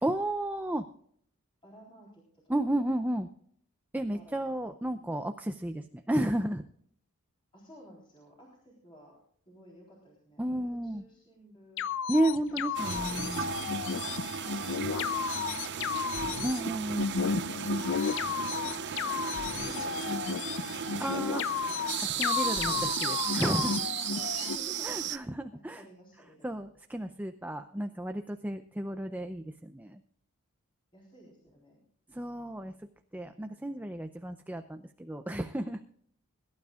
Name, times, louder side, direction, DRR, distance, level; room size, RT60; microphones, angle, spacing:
voice 1, 0.0-0.9 2.5-3.3 3.9-6.6 10.4-11.0 12.1-13.5 16.4-17.1 21.0-21.4 22.0-23.8 24.8-25.8 26.4-30.0 32.1-32.7 33.1-35.8, right 1 dB, 10° right, 7 dB, 0.5 m, -32 dB
voice 2, 1.6-2.2 4.1-4.6 7.5-9.2 9.5-11.8 12.5-13.7 14.6-16.0 18.0-21.4 24.1-25.0 25.5-26.5 30.9-31.8, equal, 25° left, -3 dB, 3.8 m, -53 dB
sound 1, 11.8-24.6, left 6 dB, 60° left, 0.5 m, -33 dB
sound 2, 12.7-25.2, right 8 dB, 50° right, 0.7 m, -35 dB
22.5 x 12.0 x 2.4 m, 0.63 s
head